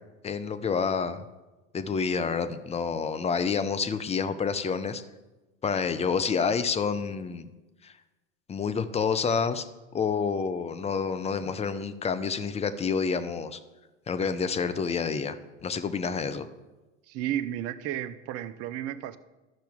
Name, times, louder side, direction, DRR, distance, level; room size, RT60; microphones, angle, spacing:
voice 1, 0.2-1.2 1.7-5.0 5.6-7.5 7.8-7.9 8.5-9.6 9.9-13.6 14.1-16.5, left 5 dB, 15° left, 10 dB, 0.6 m, -28 dB
voice 2, 17.1-19.2, right 11 dB, 40° right, 13 dB, 0.7 m, -33 dB
13.0 x 5.8 x 3.6 m, 1.1 s
hypercardioid pair, 85°, 39 cm